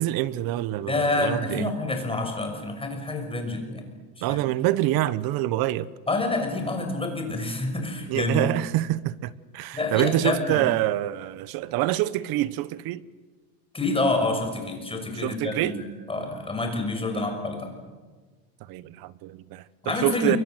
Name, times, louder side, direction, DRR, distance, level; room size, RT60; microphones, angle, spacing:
voice 1, 0.0-1.8 4.2-5.9 8.1-13.0 15.2-15.8 17.1-17.3 18.7-20.4, right 15 dB, 50° right, 1.2 m, -26 dB
voice 2, 0.8-3.9 4.2-4.4 6.1-8.5 9.7-10.7 13.7-17.8 19.8-20.4, left 2 dB, 10° left, 6.1 m, -28 dB
29.0 x 23.5 x 8.0 m
supercardioid pair, 140°, 47 cm